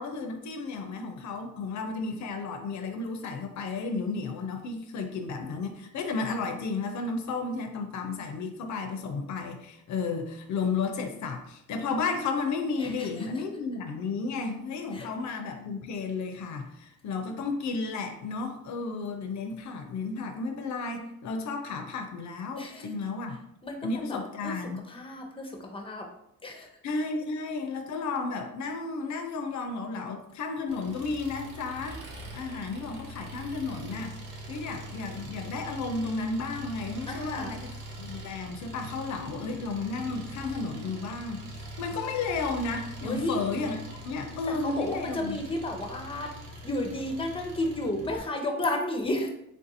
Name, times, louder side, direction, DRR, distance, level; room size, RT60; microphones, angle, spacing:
voice 1, 0.0-23.4 23.8-24.8 26.8-32.0 32.3-34.2 34.5-43.8 44.0-45.4, left 4 dB, 65° left, 6 dB, 0.6 m, -33 dB
voice 2, 12.8-13.3 14.9-15.1 22.6-22.9 23.6-24.2 24.4-24.5 24.9-26.1 26.4-26.7 37.1-37.5 39.3-39.6 43.0-43.4 44.5-46.3 46.6-49.3, left 1 dB, 20° left, 2 dB, 0.7 m, -32 dB
Engine, 30.7-48.2, right 1 dB, 85° right, 0.8 m, -43 dB
3.6 x 2.5 x 2.7 m, 0.78 s
cardioid pair, 90°, 30 cm